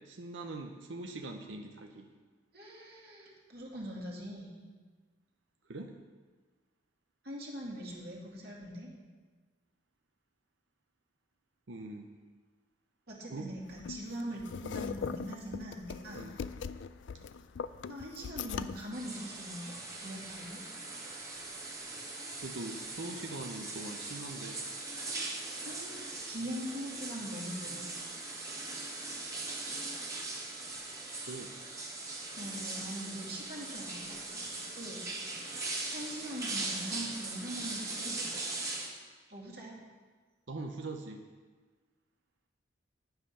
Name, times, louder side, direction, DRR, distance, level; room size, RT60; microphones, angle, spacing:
voice 1, 0.0-2.1 5.7-5.9 11.7-12.1 13.2-13.5 14.0-14.2 16.1-16.4 21.8-22.0 22.4-24.6 31.1-31.5 40.5-41.2, right 2 dB, 80° right, 4 dB, 0.8 m, -43 dB
voice 2, 2.5-4.6 7.2-8.9 13.1-16.3 17.9-20.6 25.6-27.9 32.4-34.2 34.7-35.0 35.4-35.6 35.9-38.2 39.3-39.8, equal, 55° right, -3 dB, 2.4 m, -42 dB
sound 1, 13.7-18.9, left 6 dB, 70° left, 0.4 m, -40 dB
sound 2, 18.9-38.9, right 2 dB, 15° right, 1.6 m, -40 dB
10.5 x 8.0 x 5.6 m, 1.4 s
head